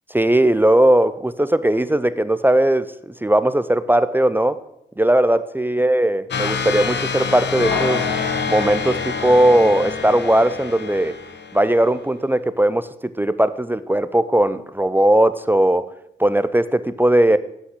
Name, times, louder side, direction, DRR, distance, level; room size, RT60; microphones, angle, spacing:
voice 1, 0.1-4.6 5.0-8.1 8.5-11.2 11.5-15.9 16.2-17.4, right 1 dB, 10° right, 14 dB, 0.5 m, -18 dB
sound 1, 6.3-11.8, left 5 dB, 70° left, 1.2 m, -26 dB
sound 2, 7.7-10.3 10.6-10.7, left 2 dB, 25° left, 3.2 m, -33 dB
8.5 x 5.9 x 7.8 m, 0.80 s
cardioid pair, 65°, 19 cm